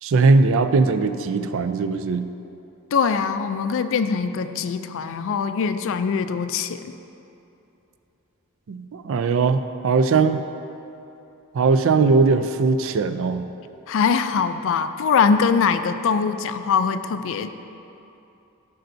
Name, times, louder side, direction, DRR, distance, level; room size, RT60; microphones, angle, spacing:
voice 1, 0.0-2.3 8.7-10.4 11.5-13.5, right 4 dB, 65° right, 10 dB, 0.4 m, -19 dB
voice 2, 2.9-6.9 13.9-17.5, left 5 dB, 60° left, 10 dB, 0.4 m, -22 dB
14.5 x 5.6 x 2.6 m, 2.8 s
head